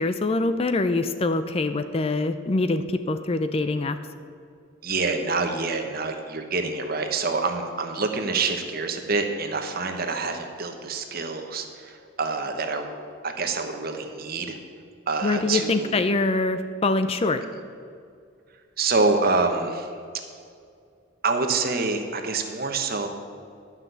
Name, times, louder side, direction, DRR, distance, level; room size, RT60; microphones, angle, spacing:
voice 1, 0.0-4.0 15.2-17.4, left 2 dB, 30° left, 10 dB, 0.4 m, -24 dB
voice 2, 4.8-12.9 13.2-14.6 15.1-16.0 18.8-19.9 21.2-23.1, right 3 dB, 50° right, 5 dB, 1.1 m, -26 dB
11.5 x 5.9 x 8.0 m, 2.3 s
head